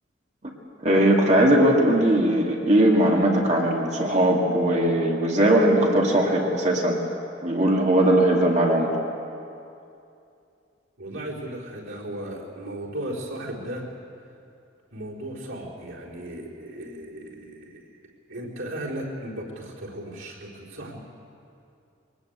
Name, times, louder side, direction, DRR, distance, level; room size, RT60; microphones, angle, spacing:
voice 1, 0.8-7.0 7.4-9.0, right 1 dB, 35° right, -1 dB, 2.2 m, -19 dB
voice 2, 11.0-13.8 14.9-17.9 18.3-21.0, right 1 dB, 90° right, -5 dB, 4.4 m, -36 dB
22.5 x 19.5 x 8.1 m, 2.6 s
head